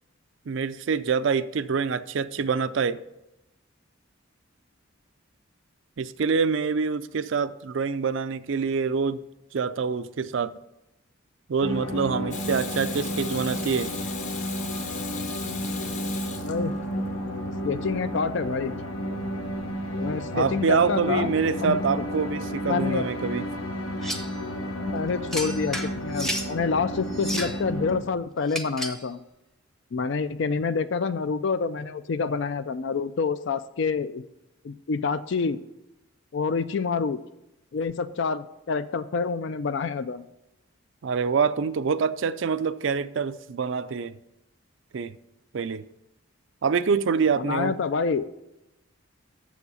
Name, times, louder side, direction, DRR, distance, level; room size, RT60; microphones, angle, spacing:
voice 1, 0.5-3.0 6.0-9.2 9.5-10.5 11.5-13.9 20.3-23.4 41.0-44.2 44.9-45.2 45.5-45.9 46.6-47.8, right 5 dB, 60° right, 0.4 m, -26 dB
sound 1, 11.6-28.0, equal, 85° left, 1.3 m, -32 dB
Water tap faucet / Sink (filling or washing), 12.3-17.1 19.5-19.6, left 6 dB, 35° left, 0.8 m, -38 dB
voice 2, 17.6-18.8 19.9-21.3 21.6-22.0 22.6-23.1 24.8-29.2 29.9-34.2 34.6-35.6 36.3-37.2 37.7-40.3 47.4-48.3, left 5 dB, 55° left, 0.4 m, -27 dB
sound 2, 24.0-24.4 25.3-26.5 27.1-27.6 28.5-29.1, equal, ahead, 0.7 m, -32 dB
7.1 x 7.1 x 5.5 m
head